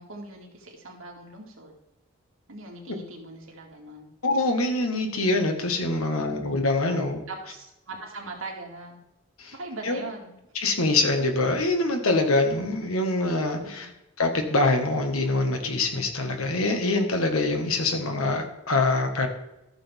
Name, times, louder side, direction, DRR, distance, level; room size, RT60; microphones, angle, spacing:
voice 1, 0.0-1.8 2.5-4.1 6.0-6.4 6.8-9.0 9.5-10.3 13.6-13.9, right 2 dB, 75° right, 0 dB, 2.4 m, -41 dB
voice 2, 4.2-7.2 9.4-9.5 9.8-10.0 10.5-13.9 14.2-19.3, left 2 dB, 85° left, 4 dB, 1.7 m, -24 dB
14.0 x 6.9 x 3.6 m, 0.91 s
head